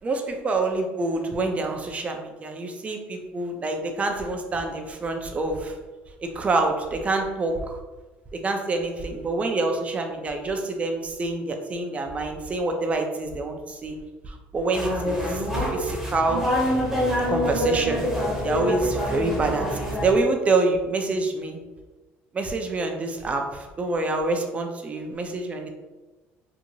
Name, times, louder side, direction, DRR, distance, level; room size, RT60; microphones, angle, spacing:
voice 1, 0.0-5.8 6.2-7.8 8.3-15.5 15.7-16.5 17.3-18.1 18.4-21.6 22.3-25.7, right 3 dB, 25° right, 4 dB, 0.5 m, -27 dB
sound 1, 14.7-20.1, equal, 5° right, 0.8 m, -25 dB
2.9 x 2.5 x 2.6 m, 1.2 s
cardioid pair, 110°, 5 cm